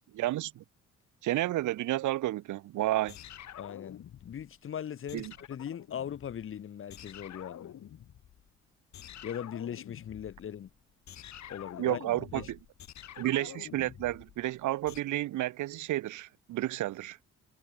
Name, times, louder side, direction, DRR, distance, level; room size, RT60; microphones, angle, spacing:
voice 1, 0.1-0.6 1.2-3.2 5.1-5.3 11.8-12.6 13.2-17.2, right 15 dB, 75° right, 0.9 m, -31 dB
sound 1, 3.1-4.6 5.1-6.6 6.9-8.5 8.9-15.0, left 10 dB, 65° left, 3.1 m, -48 dB
voice 2, 3.6-7.7 9.2-10.7 11.5-12.0 12.3-12.5, left 9 dB, 45° left, 0.9 m, -39 dB
cardioid pair, 90°, 30 cm